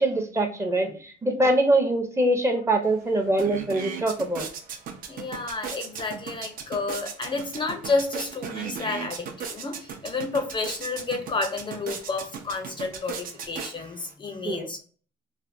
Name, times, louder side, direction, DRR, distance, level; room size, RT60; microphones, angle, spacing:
voice 1, 0.0-4.5 14.4-14.7, right 1 dB, 15° right, 4 dB, 0.7 m, -23 dB
sound 1, 2.8-2.9 3.2-14.1, right 6 dB, 55° right, 0.6 m, -37 dB
voice 2, 5.1-14.8, left 3 dB, 30° left, 6 dB, 0.5 m, -30 dB
3.3 x 2.1 x 2.5 m, 0.43 s
cardioid pair, 110°, 17 cm